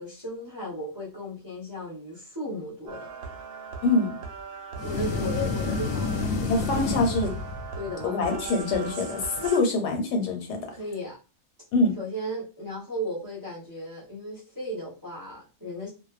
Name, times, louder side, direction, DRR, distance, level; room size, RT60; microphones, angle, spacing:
voice 1, 0.0-3.1 4.8-6.2 6.6-6.7 7.8-8.1 10.7-11.2 12.0-15.9, equal, 20° right, -7 dB, 0.5 m, -35 dB
sound 1, 2.9-9.6, right 5 dB, 70° right, 0.9 m, -39 dB
voice 2, 3.8-4.2 6.5-7.3 8.0-10.6 11.7-11.9, left 2 dB, 90° left, 3 dB, 1.3 m, -24 dB
sound 2, 4.8-7.9, left 4 dB, 70° left, 0.8 m, -29 dB
2.5 x 2.2 x 2.3 m, 0.33 s
omnidirectional pair, 1.7 m